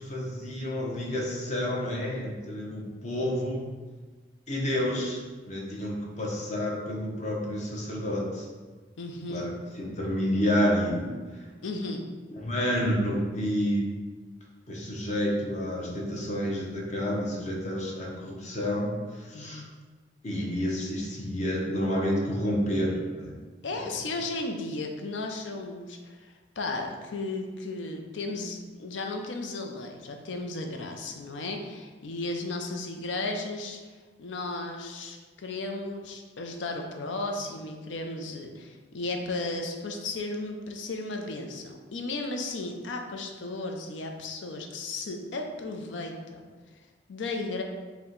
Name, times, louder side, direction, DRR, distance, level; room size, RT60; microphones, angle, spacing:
voice 1, 0.0-3.6 4.5-5.2 5.5-8.5 9.3-9.5 9.7-11.5 12.3-13.9 14.7-19.6 20.2-23.4 23.7-23.9, equal, 40° left, -2 dB, 0.8 m, -29 dB
voice 2, 9.0-9.5 11.6-12.0 19.3-19.6 23.6-33.8 34.2-46.5 47.1-47.6, left 2 dB, 85° left, 3 dB, 0.5 m, -35 dB
4.4 x 2.2 x 3.8 m, 1.4 s
head